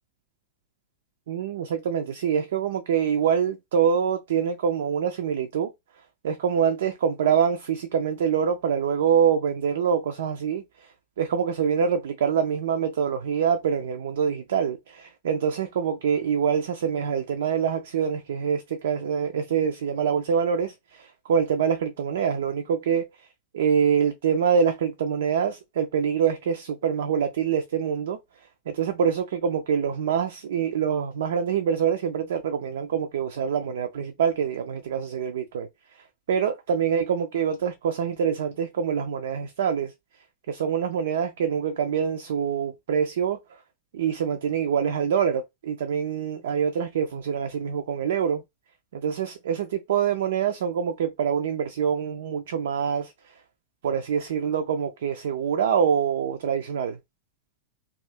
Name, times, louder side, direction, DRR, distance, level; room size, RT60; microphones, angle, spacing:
voice 1, 1.3-5.7 6.2-10.6 11.2-23.1 23.5-28.2 28.7-35.7 36.3-39.9 40.5-43.4 43.9-48.4 48.9-53.1 53.8-57.0, right 7 dB, 60° right, 0.3 m, -25 dB
2.6 x 2.4 x 2.5 m
figure-of-eight pair, 90°, 0 cm